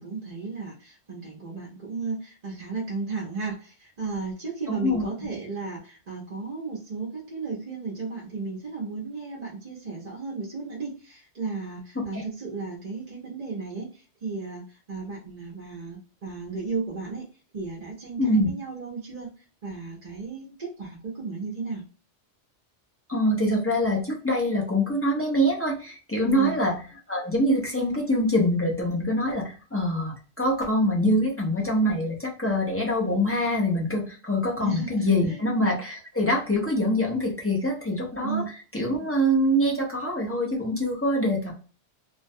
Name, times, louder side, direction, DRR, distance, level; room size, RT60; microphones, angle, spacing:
voice 1, 0.0-17.3 17.5-19.3 19.6-21.8 26.3-26.6 34.6-35.4 38.2-38.4, right 4 dB, 40° right, -3 dB, 0.7 m, -34 dB
voice 2, 4.7-5.1 12.0-12.2 18.2-18.5 23.1-26.8 27.1-41.5, equal, 20° left, -2 dB, 0.3 m, -24 dB
2.5 x 2.2 x 2.6 m, 0.37 s
omnidirectional pair, 1.2 m